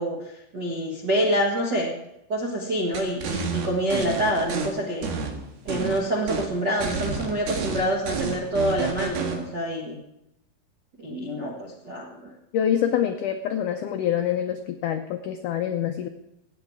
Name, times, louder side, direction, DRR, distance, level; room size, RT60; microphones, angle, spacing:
voice 1, 0.0-1.9 2.3-5.1 5.6-10.0 11.0-12.3, equal, 55° right, -3 dB, 1.1 m, -26 dB
sound 1, 2.9-4.7 5.0-6.0 6.3-6.5 6.8-9.4, right 5 dB, 75° right, 3.6 m, -30 dB
voice 2, 12.5-16.1, left 9 dB, 90° left, 6 dB, 1.8 m, -26 dB
16.5 x 8.9 x 4.7 m, 0.86 s
omnidirectional pair, 4.6 m